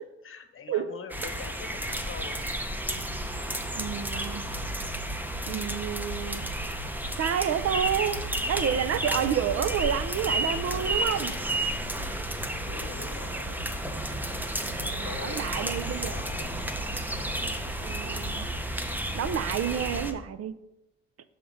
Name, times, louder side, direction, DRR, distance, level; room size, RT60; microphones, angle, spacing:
voice 1, 0.2-2.5 3.9-4.9 12.5-13.6 14.7-16.5, left 5 dB, 45° left, 8 dB, 1.0 m, -44 dB
sound 1, 1.1-20.1, right 1 dB, 5° right, 0.7 m, -32 dB
voice 2, 3.7-4.4 5.5-6.4 7.2-11.3 14.9-16.2 17.8-18.5 19.1-20.5, right 9 dB, 55° right, 12 dB, 0.5 m, -29 dB
sound 2, 4.6-18.3, right 5 dB, 75° right, 0.9 m, -48 dB
6.9 x 3.6 x 6.3 m, 0.92 s
cardioid pair, 90°, 30 cm